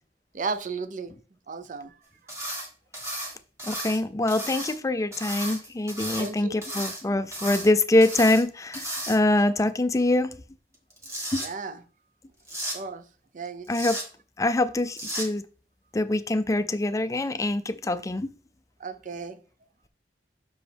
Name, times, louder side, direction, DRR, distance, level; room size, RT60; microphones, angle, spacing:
voice 1, 0.3-1.1 1.5-1.9 6.2-6.8 11.4-11.8 12.7-13.0 13.3-13.7 18.8-19.4, right 4 dB, 50° right, 0.5 m, -34 dB
sound 1, 2.3-2.7 2.9-4.0 4.3-4.7 5.1-6.3 6.6-7.0 7.3-7.7 8.0-8.4 8.7-9.4 10.7-11.5 12.5-12.8 13.7-14.0 14.9-15.3, right 1 dB, 15° right, 1.5 m, -34 dB
voice 2, 3.6-10.4 11.3-11.4 13.7-14.0 14.4-15.4 15.9-18.3, left 2 dB, 20° left, 0.4 m, -24 dB
6.3 x 4.9 x 3.4 m
head